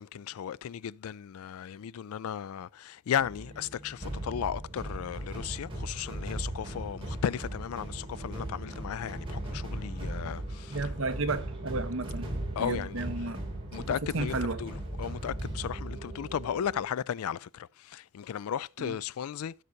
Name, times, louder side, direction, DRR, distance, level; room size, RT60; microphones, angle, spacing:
voice 1, 0.0-10.8 12.6-13.0 13.7-19.5, left 8 dB, 75° left, 0.3 m, -35 dB
sound 1, 3.2-16.8, right 1 dB, 25° right, 2.8 m, -38 dB
voice 2, 10.7-13.4 13.8-14.6 18.8-19.0, right 3 dB, 60° right, 1.0 m, -33 dB
16.0 x 6.5 x 2.7 m
head